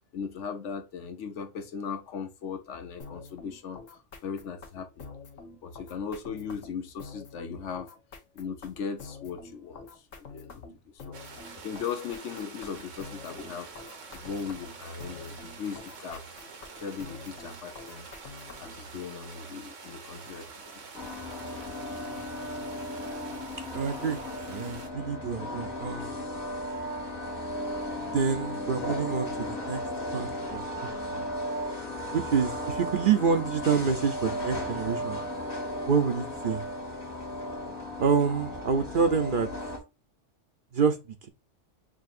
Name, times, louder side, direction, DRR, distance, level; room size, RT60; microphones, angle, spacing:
voice 1, 0.1-5.1 5.6-8.0 8.3-10.5 10.8-13.7 14.1-16.3 16.8-18.1 18.6-20.8, left 6 dB, 75° left, 1.1 m, -38 dB
sound 1, 3.0-18.9, left 4 dB, 90° left, 1.3 m, -47 dB
sound 2, 11.1-24.9, right 4 dB, 85° right, 1.4 m, -46 dB
sound 3, 20.9-39.8, left 1 dB, 50° left, 1.7 m, -35 dB
voice 2, 23.7-24.2 24.5-26.3 28.1-29.8 30.1-31.3 32.1-35.2 35.8-36.6 38.0-39.5 40.7-41.0, right 5 dB, 50° right, 0.7 m, -27 dB
6.1 x 2.7 x 2.4 m
omnidirectional pair, 1.3 m